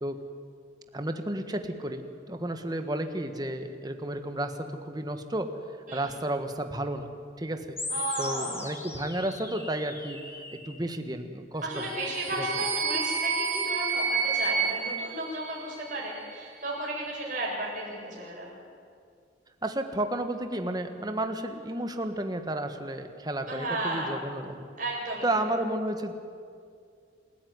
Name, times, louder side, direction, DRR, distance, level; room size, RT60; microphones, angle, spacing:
voice 1, 0.9-5.5 5.9-7.8 8.2-11.9 12.3-12.4 19.6-24.6 25.2-26.1, right 1 dB, 20° right, 7 dB, 1.5 m, -32 dB
sound 1, 7.8-10.8, left 3 dB, 15° left, 2.1 m, -38 dB
voice 2, 7.9-8.7 11.6-18.5 23.5-24.2 24.8-25.5, right 1 dB, 45° right, -3 dB, 7.8 m, -34 dB
sound 2, 11.7-16.0, right 5 dB, 90° right, 3.1 m, -30 dB
27.5 x 14.5 x 9.7 m, 2.3 s
head